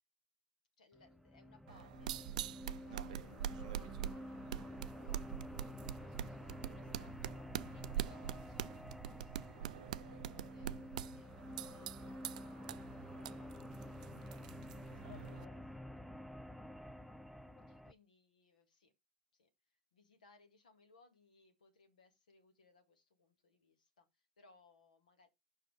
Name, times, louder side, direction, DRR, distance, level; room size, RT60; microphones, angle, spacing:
voice 1, 0.8-2.2 2.5-12.9 14.9-15.2 17.7-18.9 19.3-25.3, left 3 dB, 90° left, 1.8 m, -69 dB
sound 1, 0.9-17.9, left 1 dB, ahead, 0.4 m, -50 dB
sound 2, 1.7-15.5, right 11 dB, 80° right, 0.4 m, -45 dB
voice 2, 3.1-3.4 5.8-6.2 13.2-13.5 14.7-15.6 17.3-17.9, left 14 dB, 55° left, 0.5 m, -63 dB
5.6 x 5.2 x 5.1 m
hypercardioid pair, 95°, 4 cm